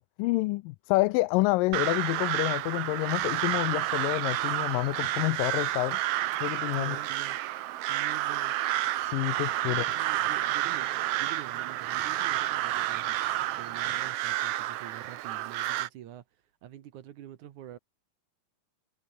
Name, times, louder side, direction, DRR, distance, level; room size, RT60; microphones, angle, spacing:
voice 1, 0.0-6.0 6.4-7.0 9.0-9.9, left 21 dB, 85° left, 2.2 m, -28 dB
Crow, 1.7-15.9, right 14 dB, 85° right, 1.3 m, -30 dB
voice 2, 6.7-7.4 7.9-8.5 9.6-13.2 13.6-16.2 16.6-17.8, right 12 dB, 65° right, 2.5 m, -46 dB
omnidirectional pair, 3.9 m